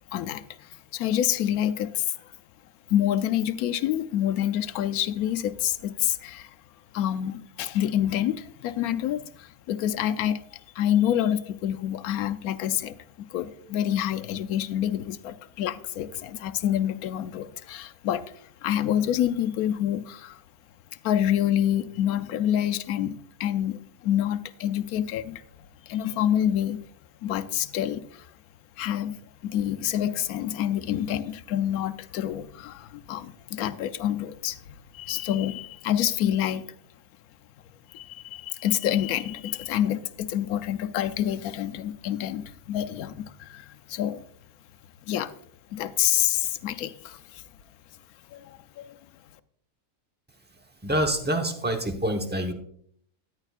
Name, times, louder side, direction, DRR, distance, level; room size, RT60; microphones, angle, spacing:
voice 1, 0.1-2.4 2.9-6.6 6.9-20.4 21.0-26.8 27.2-28.3 28.8-36.7 37.9-44.2 45.1-45.3 45.7-47.4 48.3-49.0, left 11 dB, 80° left, 11 dB, 1.1 m, -27 dB
voice 2, 50.8-52.5, right 1 dB, 10° right, 4 dB, 0.7 m, -26 dB
13.5 x 10.5 x 2.4 m, 0.65 s
omnidirectional pair, 1.6 m